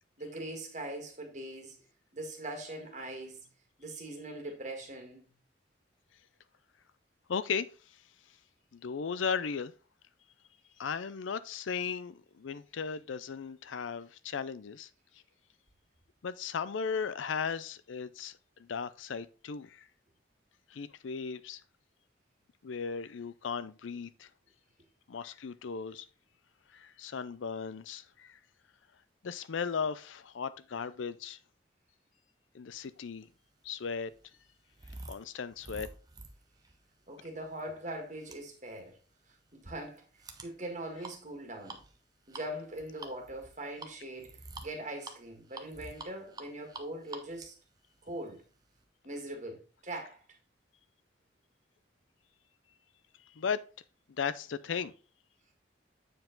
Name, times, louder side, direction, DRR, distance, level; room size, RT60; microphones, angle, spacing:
voice 1, 0.2-1.8 2.1-3.5 3.8-5.2 37.1-39.0 39.5-40.0 40.4-41.8 42.3-47.6 48.0-48.4 49.0-49.6 49.8-50.2, right 1 dB, 40° right, 1.7 m, -41 dB
voice 2, 7.3-7.7 8.7-9.7 10.8-14.9 16.2-19.9 20.7-21.6 22.6-24.3 25.1-26.1 26.7-28.4 29.2-31.4 32.5-33.3 33.6-34.1 35.1-35.9 53.3-53.6 54.2-54.9, left 6 dB, 90° left, 0.5 m, -36 dB
sound 1, 33.2-48.8, right 2 dB, 20° right, 0.7 m, -50 dB
7.7 x 4.7 x 3.8 m
head